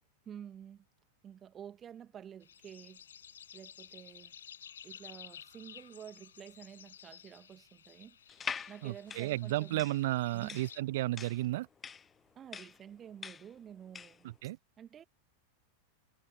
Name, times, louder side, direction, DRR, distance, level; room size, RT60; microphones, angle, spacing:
voice 1, 0.3-0.8 1.2-3.0 3.5-4.4 4.8-8.2 8.7-9.8 10.3-10.7 12.4-14.3 14.8-15.0, right 9 dB, 25° right, 2.3 m, -50 dB
sound 1, 2.4-10.8, left 8 dB, 65° left, 7.0 m, -54 dB
sound 2, 8.3-14.3, left 6 dB, 20° left, 0.7 m, -44 dB
voice 2, 8.8-11.7 14.4-14.6, right 17 dB, 55° right, 0.6 m, -33 dB
figure-of-eight pair, 90°, 0 cm